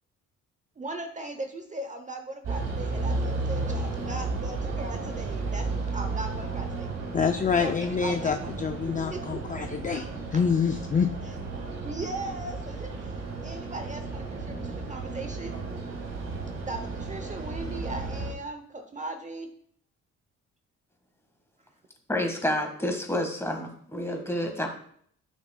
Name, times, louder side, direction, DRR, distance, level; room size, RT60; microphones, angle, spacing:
voice 1, 0.8-6.9 7.6-8.5 9.1-9.4 10.3-10.4 11.8-15.6 16.6-19.5, right 2 dB, 25° right, 6 dB, 0.8 m, -38 dB
sound 1, 2.4-18.3, right 3 dB, 60° right, 1.9 m, -33 dB
voice 2, 7.1-11.1, left 6 dB, 25° left, 6 dB, 0.5 m, -26 dB
voice 3, 22.1-24.7, left 1 dB, 10° left, 3 dB, 1.7 m, -29 dB
10.0 x 6.2 x 2.3 m, 0.62 s
cardioid pair, 90°, 30 cm